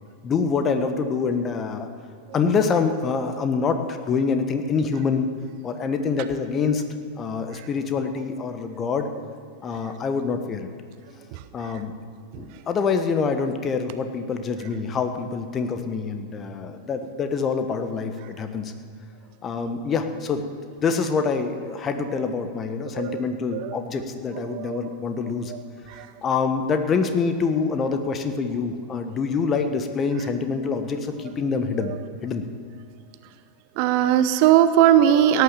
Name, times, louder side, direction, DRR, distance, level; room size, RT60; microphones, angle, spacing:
voice 1, 0.2-1.9 2.3-5.3 5.6-6.8 7.2-9.1 9.6-10.7 11.5-12.0 12.4-18.7 19.4-20.4 20.8-25.5 25.9-31.9 32.2-32.5, left 5 dB, 25° left, 7 dB, 1.2 m, -25 dB
voice 2, 11.3-11.8 12.3-12.6 22.1-22.2 22.9-23.2 23.5-23.8 24.3-24.9 25.5-25.6 25.9-26.1 31.8-32.0 33.8-35.4, right 11 dB, 45° right, 11 dB, 0.8 m, -21 dB
17.5 x 9.5 x 7.1 m, 2.4 s
figure-of-eight pair, 90°, 0 cm